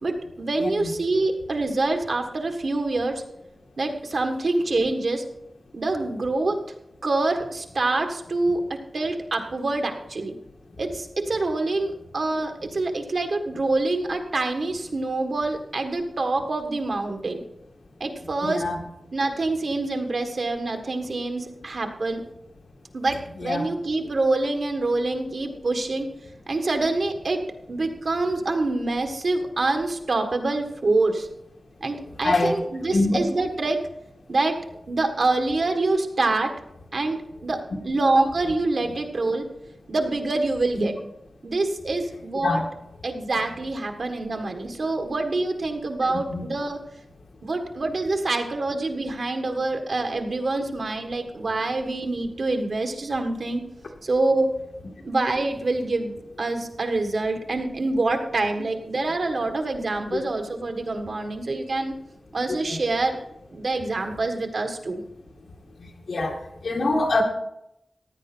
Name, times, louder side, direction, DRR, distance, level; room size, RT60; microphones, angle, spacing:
voice 1, 0.0-3.2 3.8-5.2 5.7-6.6 7.0-8.6 8.9-10.3 10.8-17.4 18.0-18.6 19.1-22.2 22.9-26.1 26.5-31.3 31.8-33.8 34.3-34.6 34.9-36.5 36.9-39.4 39.9-40.9 41.4-42.6 43.0-46.8 47.4-53.6 54.0-54.5 55.0-56.1 56.4-61.9 62.3-63.2 63.5-65.0, right 2 dB, 60° right, 5 dB, 1.6 m, -26 dB
voice 2, 0.6-0.9 18.4-18.8 23.4-23.7 32.2-32.5 32.9-33.2 40.8-40.9 42.4-42.7 46.3-46.5 60.1-60.2 62.7-62.8 66.1-66.4 66.6-67.2, left 2 dB, 85° left, 1 dB, 2.1 m, -24 dB
15.5 x 9.9 x 4.5 m, 0.83 s
wide cardioid pair, 110°, 0 cm